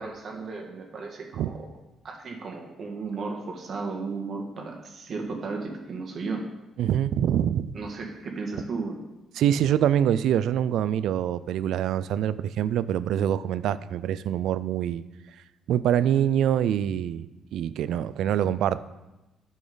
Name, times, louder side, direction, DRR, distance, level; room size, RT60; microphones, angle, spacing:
voice 1, 0.0-1.7 2.0-6.4 7.7-9.0, right 4 dB, 55° right, 2 dB, 1.5 m, -34 dB
voice 2, 6.8-7.7 9.4-15.0 15.7-17.3 17.5-18.8, right 10 dB, 80° right, 16 dB, 0.3 m, -25 dB
11.0 x 6.2 x 3.9 m, 1.0 s
cardioid pair, 90°, 0 cm